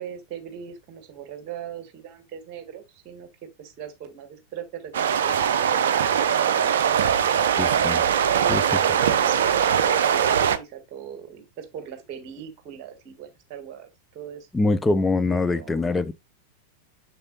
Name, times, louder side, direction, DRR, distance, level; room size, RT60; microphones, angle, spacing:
voice 1, 0.0-3.3 3.6-6.8 8.3-14.5 15.3-15.8, right 9 dB, 40° right, 1.9 m, -40 dB
sound 1, 4.9-10.6, right 8 dB, 60° right, 0.6 m, -21 dB
voice 2, 7.6-8.0 8.5-8.6 14.5-16.1, left 2 dB, 10° left, 0.5 m, -23 dB
7.0 x 6.6 x 2.4 m
figure-of-eight pair, 90°, 0 cm